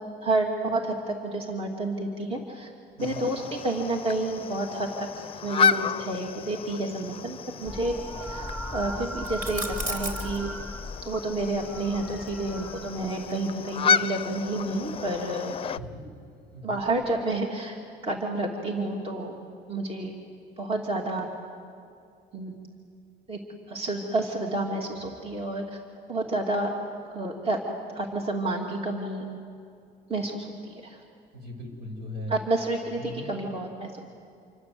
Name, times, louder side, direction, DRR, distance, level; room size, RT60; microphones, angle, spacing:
voice 1, 0.2-2.7 3.0-4.9 5.2-7.9 8.2-10.5 11.0-15.5 16.6-17.8 18.0-19.3 19.7-20.1 20.6-21.3 22.3-22.6 23.3-23.4 23.7-25.8 26.1-26.7 27.1-27.6 27.9-29.3 30.1-31.0 32.3-34.0, right 2 dB, 35° right, 1 dB, 2.8 m, -30 dB
sound 1, 3.0-15.8, left 6 dB, 35° left, 0.6 m, -31 dB
sound 2, 7.6-13.4 14.7-15.2 16.9-17.0, left 1 dB, 5° left, 1.0 m, -38 dB
sound 3, 9.2-10.4 12.2-13.8, right 2 dB, 55° right, 4.2 m, -36 dB
voice 2, 15.7-16.1 16.5-16.8 31.3-32.3 33.0-33.3, equal, 80° right, 3 dB, 6.9 m, -39 dB
27.5 x 24.5 x 7.9 m, 2.4 s
cardioid pair, 110°, 17 cm